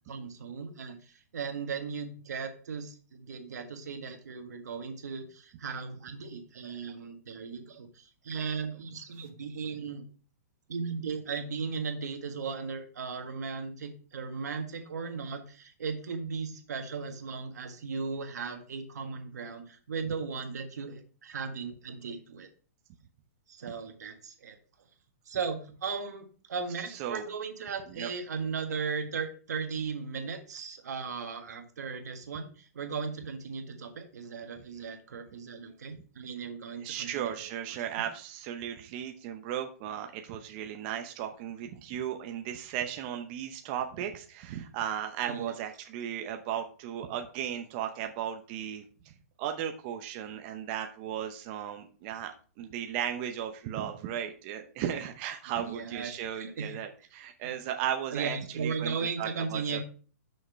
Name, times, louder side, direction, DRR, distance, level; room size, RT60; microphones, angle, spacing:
voice 1, 0.1-10.0 10.7-22.5 23.5-24.6 25.3-37.5 45.2-45.5 55.6-56.8 57.4-57.5 58.1-59.8, right 5 dB, 80° right, 6 dB, 1.6 m, -37 dB
voice 2, 26.9-27.2 27.9-28.1 36.8-49.1 49.4-52.3 52.6-59.8, right 10 dB, 35° right, 5 dB, 0.7 m, -36 dB
6.4 x 5.2 x 4.6 m, 0.39 s
hypercardioid pair, 150°, 9 cm